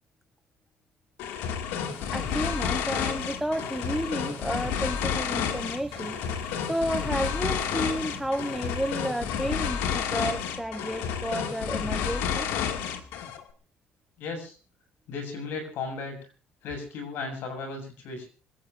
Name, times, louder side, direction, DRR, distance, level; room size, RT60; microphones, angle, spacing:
sound 1, 1.2-13.4, left 8 dB, 85° left, 2.2 m, -30 dB
sound 2, 1.8-9.7, right 9 dB, 55° right, 2.6 m, -48 dB
voice 1, 2.1-6.2 6.7-12.5, equal, ahead, 0.9 m, -31 dB
voice 2, 14.2-14.6 15.1-16.2 16.6-18.3, left 4 dB, 70° left, 7.2 m, -35 dB
26.0 x 17.5 x 2.6 m
cardioid pair, 130°, 4 cm